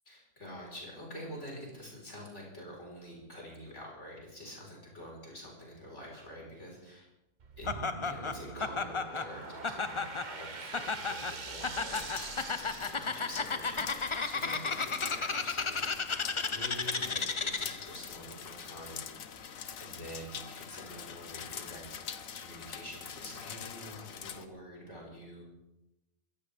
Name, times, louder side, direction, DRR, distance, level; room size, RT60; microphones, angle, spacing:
voice 1, 0.1-7.1 7.6-7.7 8.0-16.2 16.5-19.0 19.4-21.8 22.3-25.5, equal, 60° left, -2 dB, 4.8 m, -47 dB
sound 1, 7.4-13.7, right 5 dB, 40° right, 1.0 m, -44 dB
Laughter, 7.7-17.9, left 4 dB, 30° left, 0.6 m, -34 dB
sound 2, 11.9-24.4, left 7 dB, 80° left, 1.3 m, -44 dB
22.5 x 15.0 x 3.4 m, 0.93 s
omnidirectional pair, 1.4 m